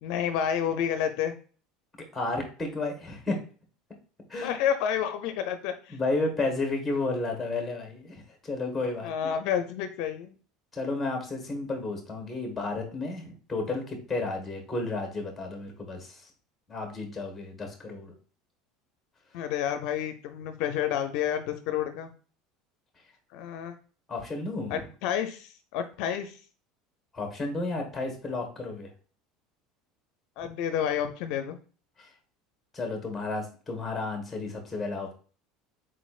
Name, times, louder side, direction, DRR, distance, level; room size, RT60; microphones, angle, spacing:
voice 1, 0.0-1.3 4.4-6.0 9.0-10.3 19.3-22.1 23.3-23.8 24.7-26.4 30.4-31.6, left 9 dB, 60° left, 8 dB, 0.5 m, -30 dB
voice 2, 2.1-3.4 4.3-4.6 5.9-9.3 10.7-16.2 16.7-18.1 24.1-24.7 27.1-28.9 32.0-32.1 32.7-35.1, left 3 dB, 5° left, 4 dB, 1.3 m, -32 dB
4.2 x 4.1 x 2.4 m, 0.39 s
cardioid pair, 155°, 0 cm